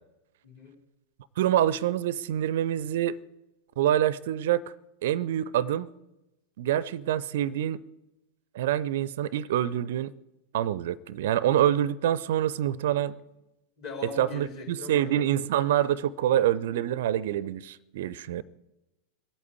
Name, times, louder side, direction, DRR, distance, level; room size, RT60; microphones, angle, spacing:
voice 1, 0.4-0.7 13.8-15.1, left 4 dB, 45° left, 4.2 m, -40 dB
voice 2, 1.4-3.2 3.8-4.6 5.0-5.9 6.6-7.8 8.5-10.1 10.5-13.2 14.2-18.4, right 11 dB, 55° right, 0.5 m, -26 dB
19.5 x 8.6 x 8.5 m
figure-of-eight pair, 90°, 0 cm